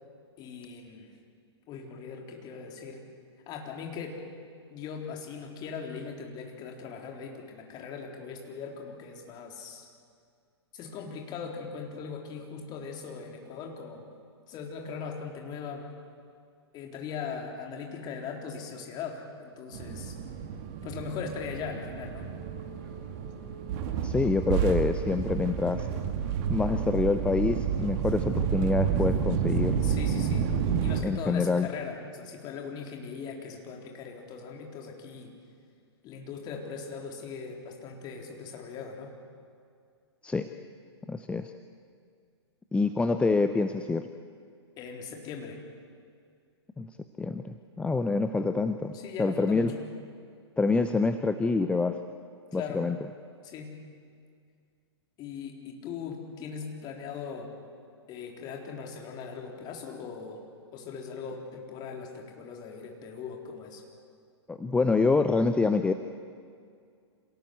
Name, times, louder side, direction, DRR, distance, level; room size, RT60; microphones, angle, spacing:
voice 1, 0.4-1.1 1.7-3.1 3.5-4.2 4.7-9.9 10.7-14.1 14.5-15.9 16.7-20.1 20.8-22.3 29.8-30.5 30.8-35.4 36.0-39.2 44.8-45.6 48.9-49.8 52.5-52.9 53.4-53.7 55.2-57.5 58.1-60.4 60.7-63.8, left 6 dB, 30° left, 2 dB, 3.9 m, -40 dB
sound 1, 19.7-31.0, right 7 dB, 40° right, 2.3 m, -30 dB
voice 2, 24.0-25.9 26.5-29.8 31.0-31.7 40.2-40.5 41.1-41.5 42.7-44.1 46.8-46.9 47.2-49.7 50.6-52.0 52.5-53.0 64.5-65.9, left 3 dB, 10° left, 9 dB, 0.7 m, -26 dB
26.5 x 17.5 x 8.2 m, 2.2 s
figure-of-eight pair, 110°, 14 cm